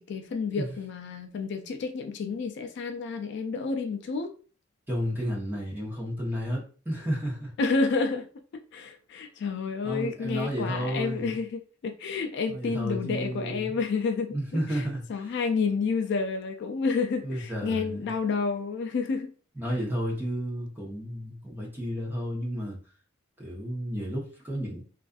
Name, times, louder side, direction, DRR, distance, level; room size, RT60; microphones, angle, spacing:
voice 1, 0.0-4.3 7.6-14.8 15.1-19.3, left 4 dB, 60° left, 0.3 m, -30 dB
voice 2, 4.9-7.5 9.8-11.4 12.5-13.8 14.3-15.4 17.2-18.1 19.6-22.8 23.4-24.8, equal, 10° right, 0.8 m, -32 dB
2.4 x 2.4 x 2.3 m
head